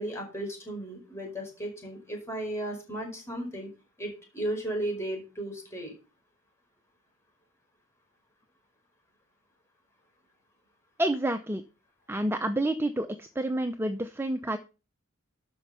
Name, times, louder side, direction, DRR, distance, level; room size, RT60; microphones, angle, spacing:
voice 1, 0.0-3.7 4.0-5.9, right 1 dB, 15° left, 1 dB, 5.0 m, -35 dB
voice 2, 11.0-11.6 12.1-14.6, right 1 dB, 10° right, 8 dB, 0.6 m, -29 dB
12.5 x 5.3 x 5.6 m, 0.32 s
head